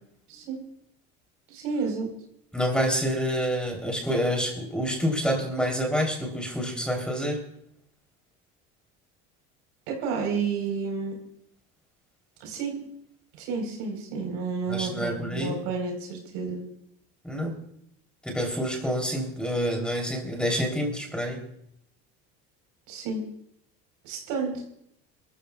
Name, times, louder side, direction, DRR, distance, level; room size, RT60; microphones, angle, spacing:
voice 1, 1.5-2.1 9.9-11.2 12.4-12.8 13.4-16.6 22.9-23.2 24.0-24.6, right 5 dB, 80° right, 2 dB, 4.5 m, -31 dB
voice 2, 2.5-7.4 14.7-15.5 17.2-17.5 18.2-21.4, equal, 5° left, 1 dB, 3.5 m, -27 dB
29.0 x 13.5 x 2.4 m, 0.74 s
cardioid pair, 115°, 31 cm